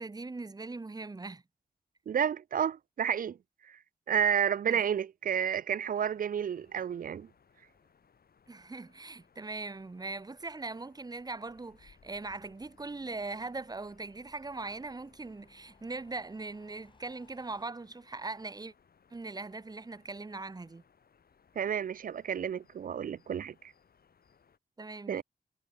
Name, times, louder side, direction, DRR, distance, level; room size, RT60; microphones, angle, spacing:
voice 1, 0.0-1.4 4.7-4.8 8.5-18.7 19.1-20.8 24.8-25.2, right 3 dB, 25° right, 1.1 m, -40 dB
voice 2, 2.1-3.4 3.7-3.8 4.1-7.3 21.6-23.5 25.1-25.2, right 8 dB, 60° right, 0.5 m, -30 dB
sound 1, 5.9-24.6, left 6 dB, 70° left, 5.4 m, -66 dB
sound 2, 11.5-17.7, left 3 dB, 30° left, 4.8 m, -65 dB
wide cardioid pair, 135°, 16 cm